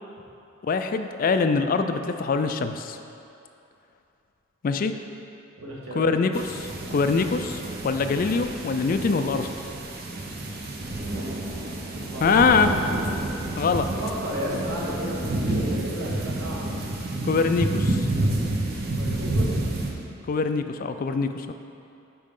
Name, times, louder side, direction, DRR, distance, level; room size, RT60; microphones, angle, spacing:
voice 1, 0.6-3.0 4.6-4.9 6.0-9.5 12.2-12.7 13.6-13.9 17.2-18.1 20.3-21.5, left 4 dB, 45° left, 8 dB, 0.3 m, -23 dB
voice 2, 5.6-6.2 12.1-12.6 14.0-16.7 18.9-19.5, equal, 85° right, -5 dB, 1.6 m, -33 dB
sound 1, 6.3-19.9, right 1 dB, 50° right, 0.8 m, -29 dB
8.7 x 5.3 x 3.7 m, 2.7 s
head